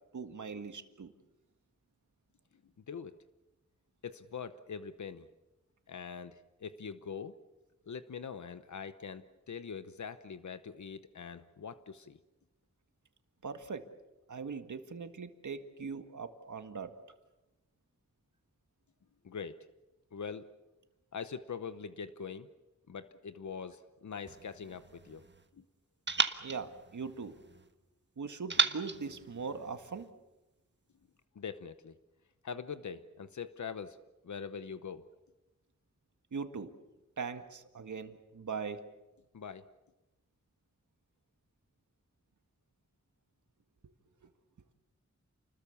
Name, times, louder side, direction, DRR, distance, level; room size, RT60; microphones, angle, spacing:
voice 1, 0.1-1.1 13.4-13.9 14.3-16.9 26.4-27.4 28.2-30.1 36.3-36.7 37.2-38.8 43.8-43.9, right 5 dB, 90° right, 7 dB, 1.8 m, -40 dB
voice 2, 4.0-5.3 5.9-7.4 7.9-12.2 19.2-19.6 20.1-20.5 21.1-22.5 22.9-25.3 25.6-25.7 31.4-31.9 32.4-34.0 34.2-35.1 39.3-39.7, left 6 dB, 80° left, 11 dB, 0.9 m, -43 dB
sound 1, 24.3-25.5 26.1-27.7 28.5-30.1, right 4 dB, 40° right, 1.4 m, -35 dB
29.0 x 20.5 x 7.1 m, 1.0 s
wide cardioid pair, 80°, 29 cm